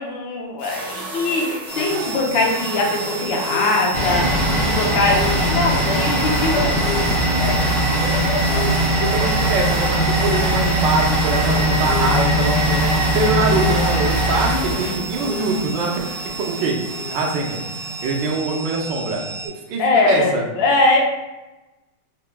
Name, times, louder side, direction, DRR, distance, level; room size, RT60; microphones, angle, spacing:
voice 1, 0.0-6.7 7.4-7.5 8.0-8.6 9.1-9.3 14.5-15.0 19.8-21.0, left 2 dB, 85° left, -1 dB, 1.5 m, -22 dB
sound 1, 0.6-18.6, equal, 60° right, 1.4 m, -32 dB
sound 2, 1.7-19.5, right 3 dB, 50° left, 1.1 m, -33 dB
sound 3, 3.9-15.7 15.9-16.0, right 1 dB, 10° right, 1.3 m, -20 dB
voice 2, 9.0-15.9 16.4-16.7 17.1-17.6 18.0-20.4, right 3 dB, 75° right, 0 dB, 1.4 m, -24 dB
4.6 x 2.8 x 2.2 m, 1.0 s
omnidirectional pair, 2.0 m